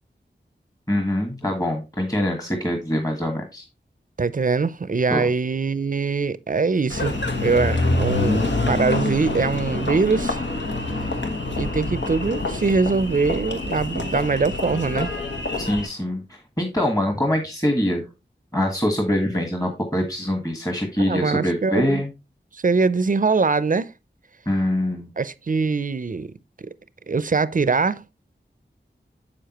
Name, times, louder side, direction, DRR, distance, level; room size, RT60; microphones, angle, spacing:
voice 1, 0.9-3.6 5.1-5.3 15.6-18.1 18.5-22.1 24.4-25.1, left 1 dB, 20° left, 1.5 m, -24 dB
voice 2, 4.2-10.4 11.6-15.1 21.0-22.0 22.5-23.9 25.2-26.4 26.6-26.7 27.1-28.0, right 4 dB, 45° right, 0.5 m, -22 dB
Engine, 6.9-15.9, left 2 dB, 80° left, 1.2 m, -26 dB
7.3 x 6.5 x 2.9 m
wide cardioid pair, 50°, 19 cm